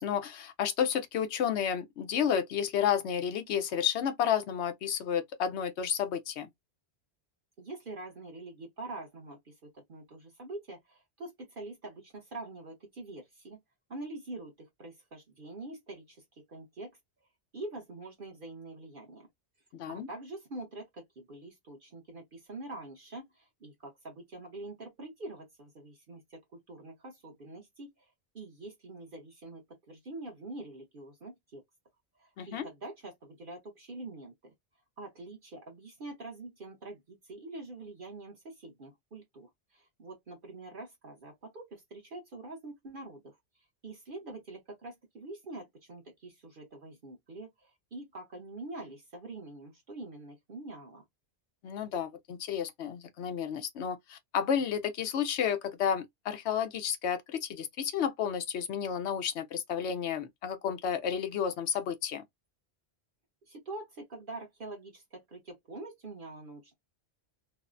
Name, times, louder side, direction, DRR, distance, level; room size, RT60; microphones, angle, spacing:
voice 1, 0.0-6.5 19.7-20.1 32.4-32.7 51.6-62.2, left 8 dB, 80° left, 0.9 m, -31 dB
voice 2, 7.6-13.6 13.9-16.2 16.5-16.9 17.5-19.3 19.9-26.4 26.7-29.6 29.9-31.6 32.2-34.5 35.0-43.4 43.8-51.0 63.5-66.7, right 2 dB, 55° right, 1.0 m, -45 dB
3.2 x 2.0 x 2.4 m
omnidirectional pair, 1.1 m